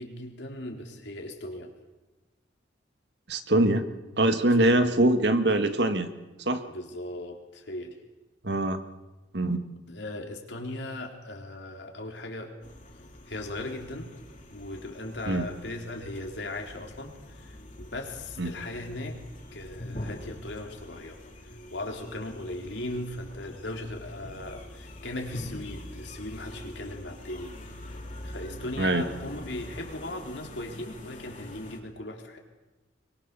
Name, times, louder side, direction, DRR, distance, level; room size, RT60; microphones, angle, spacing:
voice 1, 0.0-1.7 4.5-4.9 6.7-8.0 9.9-12.6 13.3-14.1 14.5-19.2 19.5-27.6 28.2-32.4, left 1 dB, 70° left, 2 dB, 3.9 m, -38 dB
voice 2, 3.3-3.9 4.2-6.1 6.5-6.6 8.4-8.8 9.3-9.7 15.3-15.5 18.4-18.5 28.8-29.0, right 1 dB, 65° right, 8 dB, 1.8 m, -23 dB
sound 1, 12.6-31.8, left 1 dB, 40° left, 3.7 m, -44 dB
24.0 x 23.5 x 6.9 m, 1.1 s
head